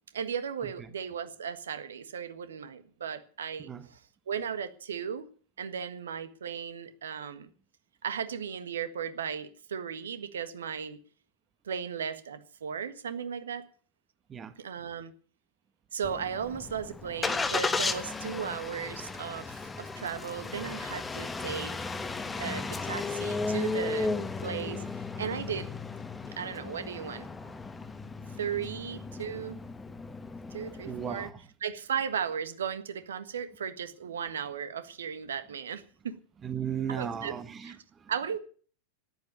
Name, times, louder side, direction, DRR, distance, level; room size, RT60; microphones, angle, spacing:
voice 1, 0.1-4.0 4.3-5.3 5.6-7.5 8.0-11.0 11.6-13.6 14.6-15.1 15.9-21.7 22.4-24.1 24.4-24.8 25.2-25.7 26.4-27.3 28.4-29.6 30.5-31.3 31.6-36.2 36.9-37.3 37.6-37.8 38.1-38.4, right 7 dB, 65° right, 1.5 m, -36 dB
Engine starting, 16.0-31.3, left 4 dB, 15° left, 1.3 m, -35 dB
voice 2, 24.6-25.2 27.4-27.5 30.8-31.4 36.4-38.1, right 8 dB, 20° right, 1.3 m, -37 dB
13.5 x 10.5 x 8.5 m
figure-of-eight pair, 90°, 0 cm